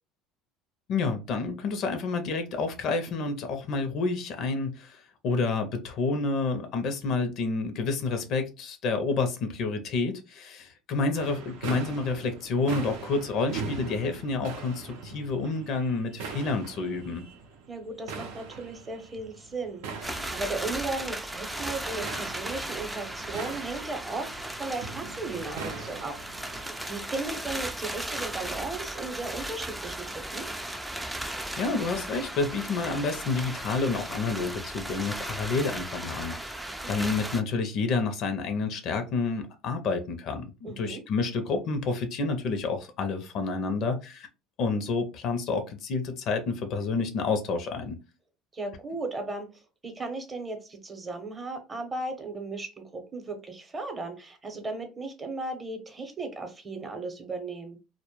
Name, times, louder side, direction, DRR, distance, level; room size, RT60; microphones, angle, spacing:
voice 1, 0.9-17.2 31.6-44.3 44.6-48.0, left 4 dB, 55° left, 0.5 m, -29 dB
sound 1, 11.1-26.9, right 4 dB, 85° right, 0.5 m, -41 dB
voice 2, 17.7-30.5 40.6-41.0 48.5-57.8, right 3 dB, 25° right, 0.7 m, -36 dB
sound 2, 20.0-37.4, right 1 dB, 5° right, 0.3 m, -36 dB
2.1 x 2.0 x 2.9 m
supercardioid pair, 105°, 0 cm